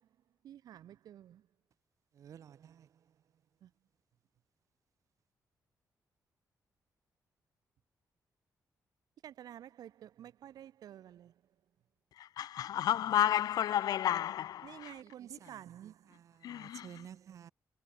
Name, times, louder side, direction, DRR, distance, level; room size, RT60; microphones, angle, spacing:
voice 1, 0.4-1.4 3.6-3.7 9.2-11.3 14.6-16.1, right 11 dB, 75° right, 2.5 m, -50 dB
voice 2, 2.2-2.9 15.4-15.5 16.1-17.5, right 9 dB, 55° right, 1.3 m, -52 dB
voice 3, 12.2-15.0 16.4-17.1, left 11 dB, 80° left, 1.1 m, -32 dB
wide cardioid pair, 180°, 7 cm